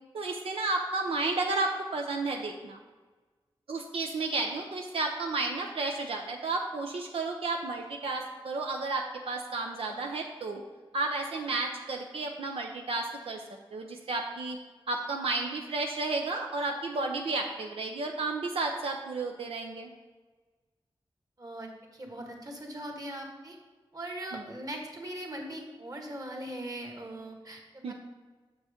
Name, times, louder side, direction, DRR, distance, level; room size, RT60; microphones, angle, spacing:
voice 1, 0.1-2.8 3.7-10.6 10.9-13.4 13.7-14.6 14.9-19.9 24.3-24.4 27.8-27.9, right 3 dB, 85° right, 2 dB, 0.6 m, -32 dB
voice 2, 21.4-23.6 23.9-27.9, right 1 dB, 40° right, 2 dB, 1.7 m, -40 dB
6.4 x 6.1 x 5.1 m, 1.3 s
cardioid pair, 55°, 9 cm